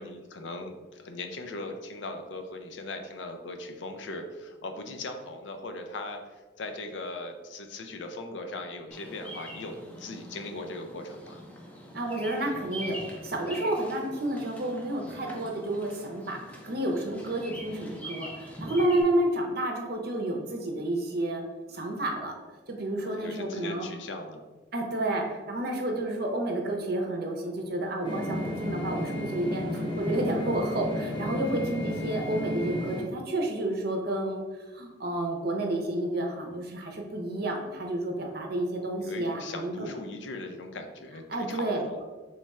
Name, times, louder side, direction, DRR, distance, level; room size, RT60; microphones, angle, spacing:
voice 1, 0.0-6.2 6.6-11.4 23.0-24.4 39.0-42.0, left 2 dB, 75° left, 6 dB, 0.4 m, -39 dB
Bird vocalization bird call bird song, 8.9-19.0, equal, 10° left, 0.5 m, -44 dB
voice 2, 11.9-21.4 21.7-22.3 22.7-23.9 24.7-34.4 34.7-39.9 41.3-41.8, right 1 dB, 55° right, 2 dB, 0.6 m, -30 dB
sound 1, 28.0-33.0, left 1 dB, 25° left, 0.8 m, -33 dB
3.2 x 2.3 x 4.1 m, 1.3 s
head